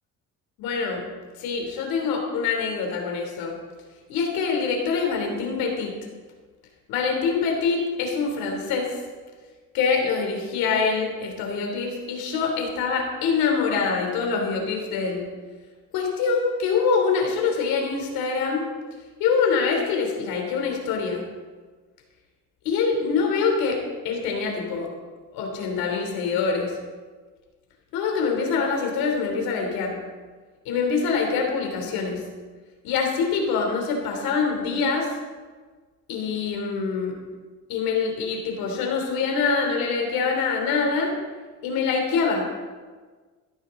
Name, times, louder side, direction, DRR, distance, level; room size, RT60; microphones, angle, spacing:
voice 1, 0.6-1.0 1.4-3.5 4.1-5.9 6.9-8.9 9.7-15.2 15.9-18.6 19.2-21.2 22.6-24.9 25.3-26.7 27.9-30.0 30.6-32.2 32.8-35.1 36.1-37.2 37.7-41.1 41.6-42.5, left 5 dB, 85° left, 2 dB, 3.3 m, -25 dB
15.0 x 13.5 x 3.8 m, 1.4 s
supercardioid pair, 85°, 35 cm